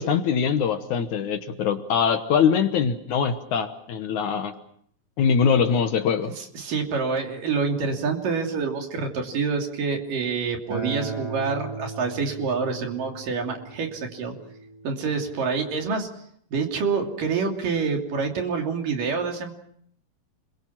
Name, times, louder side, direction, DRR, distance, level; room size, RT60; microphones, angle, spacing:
voice 1, 0.0-4.5 5.2-6.3, left 6 dB, 65° left, 8 dB, 2.3 m, -23 dB
voice 2, 6.4-14.3 14.8-16.1 16.5-19.5, right 5 dB, 65° right, 2 dB, 4.5 m, -27 dB
Acoustic guitar, 10.7-15.9, right 4 dB, 25° right, 5.9 m, -37 dB
29.5 x 22.5 x 5.9 m, 0.66 s
omnidirectional pair, 4.1 m